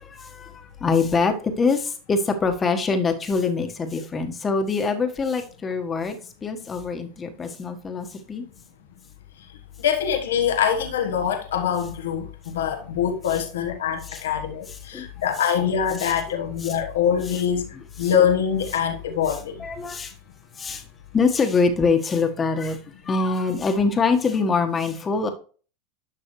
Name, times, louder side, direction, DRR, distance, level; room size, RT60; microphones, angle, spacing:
voice 1, 0.0-8.4 14.1-14.2 14.9-15.1 16.0-16.1 19.6-20.1 20.6-20.8 21.1-22.8 23.1-25.3, left 4 dB, 25° left, 1.4 m, -24 dB
voice 2, 9.8-19.6, left 8 dB, 85° left, 1.2 m, -24 dB
11.0 x 6.1 x 3.2 m
hypercardioid pair, 100°, 0 cm